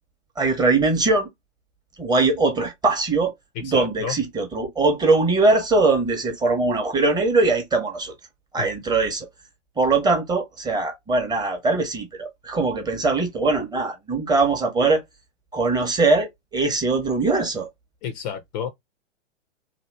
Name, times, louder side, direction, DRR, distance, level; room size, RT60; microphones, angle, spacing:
voice 1, 0.4-1.3 2.0-3.3 3.6-8.1 8.5-9.3 9.8-15.0 15.5-17.7, right 3 dB, 10° right, 0.8 m, -21 dB
voice 2, 3.7-4.1 8.6-8.7 18.0-18.7, left 8 dB, 35° left, 0.5 m, -30 dB
2.8 x 2.1 x 3.2 m
hypercardioid pair, 115°, 36 cm